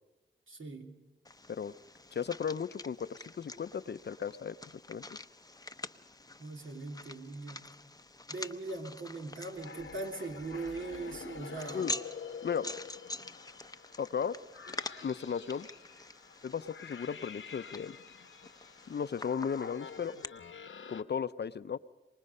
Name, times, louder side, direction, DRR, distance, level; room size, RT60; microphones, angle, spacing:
voice 1, 0.5-1.0 6.4-7.7 8.3-11.9, right 3 dB, 75° right, 2 dB, 2.7 m, -40 dB
sound 1, 1.2-20.2, left 2 dB, 20° left, 0.6 m, -46 dB
voice 2, 2.1-4.6 4.9-5.0 11.7-11.9 12.4-12.7 14.0-14.4 14.7-15.7 16.4-18.0 18.9-20.1 20.9-21.8, left 7 dB, 55° left, 14 dB, 0.6 m, -35 dB
sound 2, 9.5-21.0, left 6 dB, 75° left, 1.0 m, -48 dB
24.5 x 20.0 x 5.5 m, 1.1 s
wide cardioid pair, 70°, 20 cm